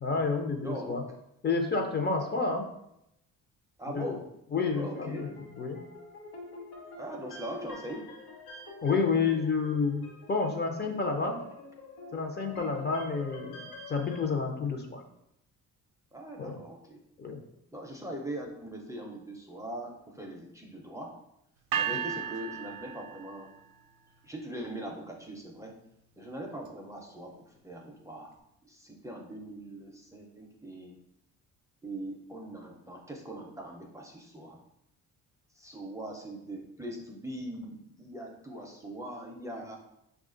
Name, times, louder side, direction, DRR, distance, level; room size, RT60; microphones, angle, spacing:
voice 1, 0.0-1.0 1.4-2.7 3.9-4.1 4.5-5.8 8.8-11.4 12.1-15.0 16.4-16.6 17.2-17.4, left 4 dB, 30° left, 3 dB, 0.7 m, -30 dB
voice 2, 0.6-1.0 2.1-2.3 3.8-4.3 4.8-5.3 7.0-8.1 12.5-12.9 16.1-17.0 17.7-21.2 21.8-23.5 24.2-25.8 26.2-28.3 28.6-31.0 31.8-34.6 35.5-39.8, right 1 dB, 10° right, 0 dB, 0.6 m, -41 dB
sound 1, 4.7-14.2, left 2 dB, 85° left, 1.1 m, -47 dB
sound 2, 21.7-23.8, right 8 dB, 70° right, 0.6 m, -34 dB
4.6 x 2.4 x 3.7 m, 0.80 s
cardioid pair, 105°, 34 cm